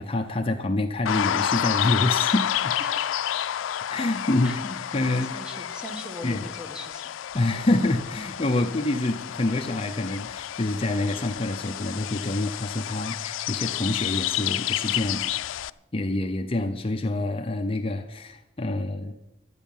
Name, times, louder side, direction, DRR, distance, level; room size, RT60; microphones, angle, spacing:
voice 1, 0.0-2.7 3.9-5.4 6.2-6.5 7.3-15.3 15.9-19.2, left 2 dB, 30° left, 4 dB, 0.7 m, -27 dB
sound 1, 1.1-15.7, left 11 dB, 90° left, 0.4 m, -30 dB
voice 2, 5.3-7.1, left 1 dB, 5° right, 4 dB, 1.4 m, -40 dB
12.5 x 9.1 x 7.2 m, 0.94 s
head